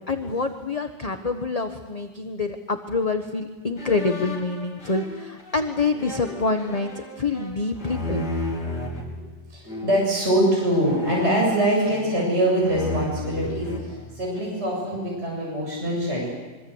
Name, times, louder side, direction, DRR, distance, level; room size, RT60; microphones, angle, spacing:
voice 1, 0.1-8.3, left 3 dB, 25° left, 6 dB, 1.1 m, -26 dB
sound 1, 3.8-9.0 9.7-10.2 10.8-12.3 12.6-14.6, left 2 dB, 65° left, 4.5 m, -34 dB
voice 2, 8.7-16.3, right 1 dB, 35° right, -3 dB, 8.0 m, -24 dB
25.5 x 24.5 x 8.0 m, 1.2 s
omnidirectional pair, 1.9 m